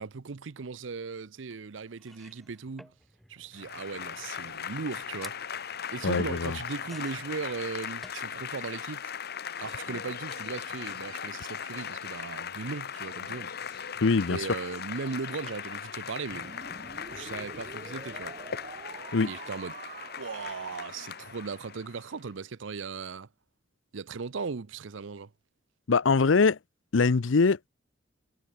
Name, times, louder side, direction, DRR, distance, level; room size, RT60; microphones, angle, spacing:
voice 1, 0.0-2.9 3.3-5.5 5.9-9.1 9.6-14.0 14.3-16.6 17.1-18.4 19.2-19.8 20.2-23.3 23.9-25.3, right 4 dB, 75° right, 0.7 m, -38 dB
sound 1, 1.5-1.6 2.0-8.7 9.0-9.8 10.8-11.0 11.2-11.3, equal, ahead, 3.2 m, -56 dB
Applause / Crowd, 3.5-22.1, left 8 dB, 55° left, 1.4 m, -39 dB
voice 2, 6.0-6.6 14.0-14.4 19.1-19.3 25.9-26.6 26.9-27.7, left 4 dB, 80° left, 0.7 m, -23 dB
sound 2, 16.3-22.2, right 3 dB, 40° right, 2.2 m, -46 dB
head